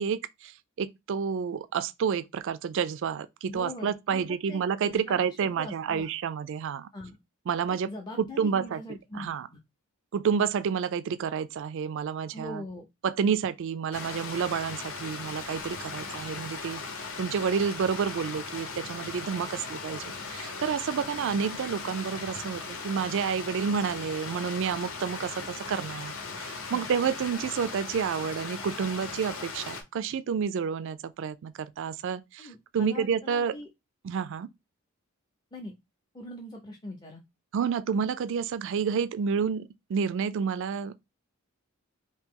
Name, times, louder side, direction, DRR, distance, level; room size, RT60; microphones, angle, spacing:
voice 1, 0.0-6.9 7.5-7.9 8.2-8.8 9.1-9.5 10.1-12.6 13.0-16.8 17.2-33.6 34.0-34.5 37.5-40.9, right 6 dB, 55° right, 0.3 m, -29 dB
voice 2, 3.5-6.1 6.9-7.2 7.8-9.6 12.3-12.9 26.7-26.9 32.4-33.7 35.5-35.7 36.1-37.2, left 1 dB, 20° left, 0.5 m, -42 dB
Stream, 13.9-29.8, left 4 dB, 65° left, 0.8 m, -38 dB
2.9 x 2.7 x 3.6 m
head